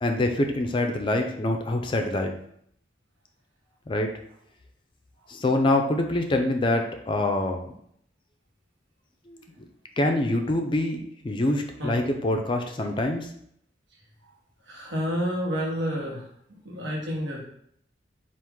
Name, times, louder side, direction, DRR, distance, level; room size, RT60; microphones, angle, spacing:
voice 1, 0.0-2.4 3.9-4.1 5.3-7.7 9.3-9.4 10.0-13.3, left 1 dB, 25° left, 4 dB, 0.4 m, -25 dB
voice 2, 14.6-16.2 16.6-17.4, equal, 85° right, -3 dB, 1.3 m, -29 dB
4.5 x 2.5 x 3.6 m, 0.69 s
head